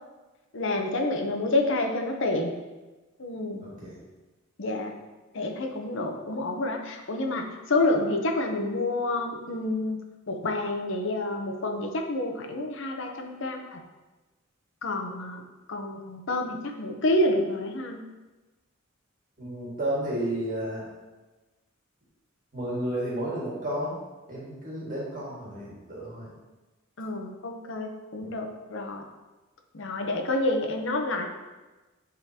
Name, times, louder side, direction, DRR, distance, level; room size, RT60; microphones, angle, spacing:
voice 1, 0.5-2.6 3.2-3.6 4.6-4.9 5.3-10.0 10.3-13.8 14.8-15.4 15.7-18.0 27.0-29.0 29.7-31.3, left 2 dB, 65° left, 3 dB, 0.8 m, -28 dB
voice 2, 3.6-4.0 19.4-20.9 22.5-24.0 24.3-26.3 28.2-28.3, right 1 dB, 40° right, -5 dB, 1.8 m, -32 dB
10.5 x 3.8 x 2.8 m, 1.2 s
head